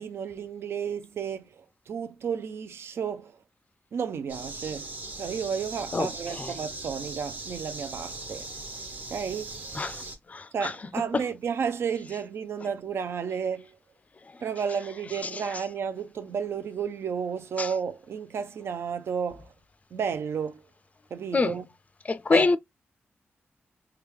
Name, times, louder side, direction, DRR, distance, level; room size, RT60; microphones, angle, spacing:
voice 1, 0.0-3.4 3.9-8.5 9.1-9.6 10.5-13.8 14.4-19.5 19.9-20.7 21.1-21.7 22.3-22.5, right 7 dB, 75° right, 0.5 m, -32 dB
sound 1, 4.3-10.2, right 2 dB, 40° right, 0.8 m, -39 dB
voice 2, 22.1-22.6, left 3 dB, 35° left, 0.3 m, -23 dB
3.4 x 2.3 x 3.1 m
wide cardioid pair, 95°, 4 cm